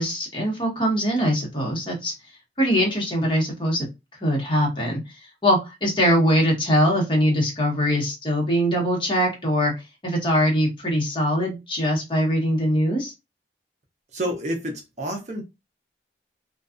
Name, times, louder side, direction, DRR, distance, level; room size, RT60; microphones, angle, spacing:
voice 1, 0.0-2.1 2.6-3.9 4.2-5.0 5.4-9.7 10.0-13.1, equal, 30° left, 0.9 m, -22 dB
voice 2, 14.1-15.4, equal, 40° right, 0.5 m, -29 dB
2.6 x 2.3 x 2.4 m
head